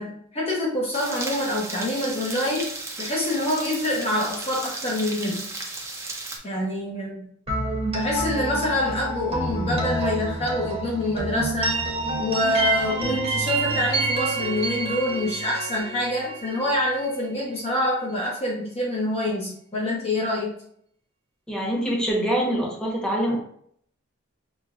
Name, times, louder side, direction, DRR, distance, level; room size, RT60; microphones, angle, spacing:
voice 1, 0.0-2.7 3.0-5.4 6.4-7.3 7.9-11.8 12.2-20.5, left 1 dB, 30° left, -4 dB, 0.7 m, -26 dB
sound 1, 0.9-6.4, right 2 dB, 15° right, 0.5 m, -35 dB
sound 2, 7.5-17.2, right 2 dB, 30° right, 0.9 m, -28 dB
voice 2, 21.5-23.4, right 1 dB, 5° left, -4 dB, 1.0 m, -24 dB
6.1 x 2.2 x 2.4 m, 0.65 s
head